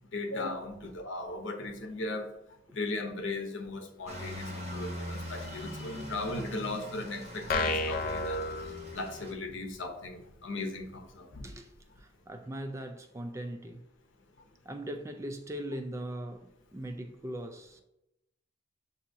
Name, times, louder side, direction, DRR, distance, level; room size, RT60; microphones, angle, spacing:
voice 1, 0.1-2.3 2.7-8.7 8.9-11.5, left 2 dB, 85° left, 0.8 m, -37 dB
voice 2, 1.8-2.2 2.7-2.8 5.9-6.1 11.4-13.9 14.6-17.8, right 1 dB, 15° right, 0.3 m, -40 dB
sound 1, 4.1-9.3, equal, 35° right, 0.9 m, -42 dB
sound 2, 7.5-9.4, left 2 dB, 50° left, 0.5 m, -32 dB
7.1 x 2.8 x 2.7 m
head